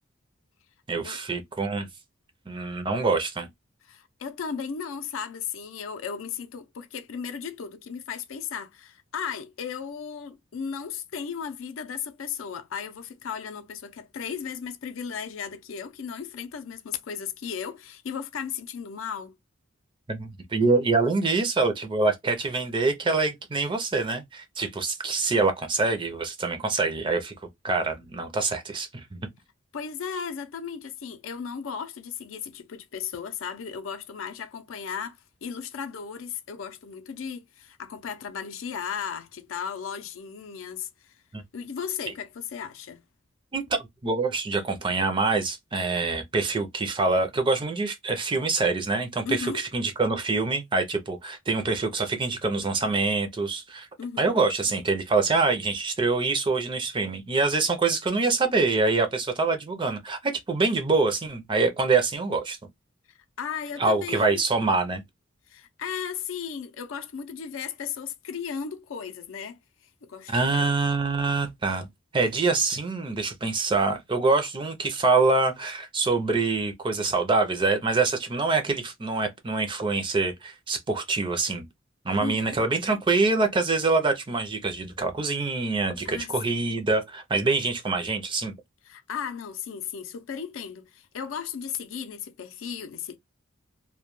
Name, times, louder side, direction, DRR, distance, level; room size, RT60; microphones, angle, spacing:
voice 1, 0.9-1.9 2.5-3.5 20.1-27.3 27.6-29.2 41.3-41.4 43.5-53.9 54.2-62.6 63.8-65.0 70.3-71.9 72.1-81.7 82.0-88.5, right 3 dB, 25° right, 0.4 m, -25 dB
voice 2, 3.9-19.4 29.7-41.1 41.5-43.0 49.2-49.6 54.0-54.3 63.1-64.4 65.5-69.6 70.0-70.8 82.2-82.6 86.0-86.7 88.9-93.2, left 7 dB, 75° left, 0.4 m, -35 dB
2.2 x 2.1 x 2.9 m
head